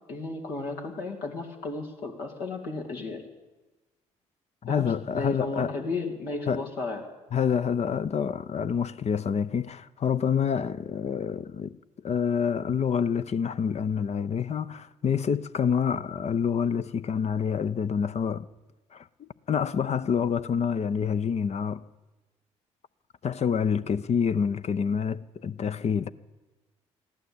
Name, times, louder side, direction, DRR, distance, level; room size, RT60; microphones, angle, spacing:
voice 1, 0.1-3.2 4.7-7.0 23.7-23.9, left 3 dB, 75° left, 2.4 m, -34 dB
voice 2, 4.6-5.7 6.5-6.6 7.3-11.8 12.0-18.5 18.9-21.8 23.2-26.1, left 7 dB, 45° left, 0.6 m, -27 dB
15.0 x 11.5 x 8.4 m
hypercardioid pair, 55°, 15 cm